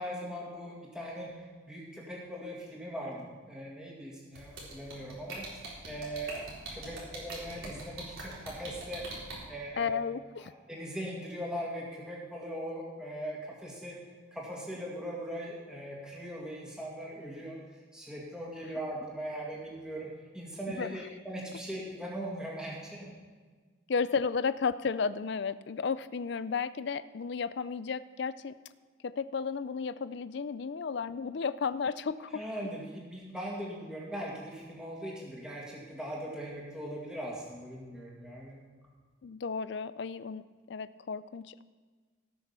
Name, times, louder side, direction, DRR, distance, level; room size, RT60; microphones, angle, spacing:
voice 1, 0.0-6.4 6.7-9.1 9.5-10.0 10.4-14.0 14.3-17.6 17.9-23.1 32.3-38.6, equal, 5° right, -4 dB, 2.0 m, -40 dB
sound 1, 4.4-9.3, right 3 dB, 85° right, 3.9 m, -41 dB
voice 2, 9.8-10.5 20.7-21.0 23.9-28.6 29.0-32.4 39.2-40.4 40.7-41.6, left 5 dB, 60° left, 15 dB, 0.4 m, -33 dB
18.0 x 6.3 x 5.7 m, 1.5 s
head